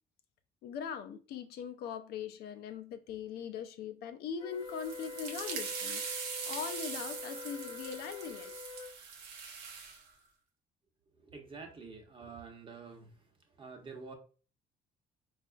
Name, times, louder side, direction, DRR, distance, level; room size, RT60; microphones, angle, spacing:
voice 1, 0.6-6.0 6.4-8.5, left 7 dB, 70° left, 0.4 m, -41 dB
Wind instrument woodwind instrument, 4.4-8.9, left 5 dB, 30° left, 0.6 m, -46 dB
sound 1, 4.6-10.0, right 6 dB, 85° right, 0.6 m, -42 dB
voice 2, 11.3-13.1 13.6-14.1, right 4 dB, 30° right, 0.8 m, -47 dB
4.0 x 2.4 x 2.3 m
cardioid pair, 110°, 17 cm